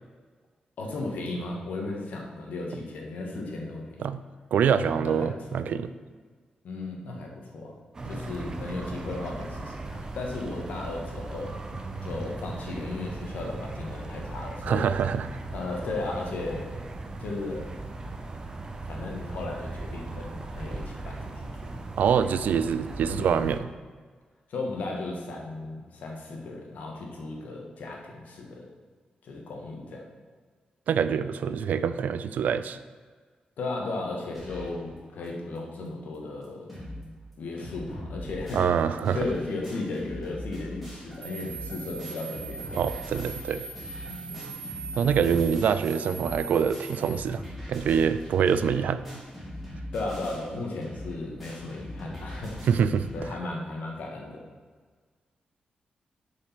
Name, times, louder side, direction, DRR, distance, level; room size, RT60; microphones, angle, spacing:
voice 1, 0.8-4.1 5.0-5.7 6.6-7.8 8.0-11.5 12.0-14.9 15.5-16.7 17.2-17.7 18.9-21.7 23.1-23.5 24.5-28.7 29.2-30.0 33.6-36.8 37.4-38.7 39.1-42.9 44.0-44.6 49.9-52.6 53.1-54.4, left 2 dB, 85° left, 0 dB, 1.6 m, -35 dB
voice 2, 4.5-5.9 14.6-15.3 22.0-23.7 30.9-32.8 38.5-39.2 42.8-43.7 45.0-47.4 47.7-49.0 52.7-53.1, right 7 dB, 80° right, 13 dB, 0.4 m, -25 dB
sound 1, 7.9-23.6, right 2 dB, 25° right, 0.6 m, -38 dB
sound 2, 34.3-34.8 35.3-35.4 35.6-35.7 36.1-36.2 36.4-37.0 37.3-53.2, left 1 dB, ahead, 2.5 m, -41 dB
sound 3, 41.2-47.2, right 4 dB, 50° right, 1.2 m, -41 dB
7.2 x 5.1 x 5.8 m, 1.5 s
wide cardioid pair, 170°, 3 cm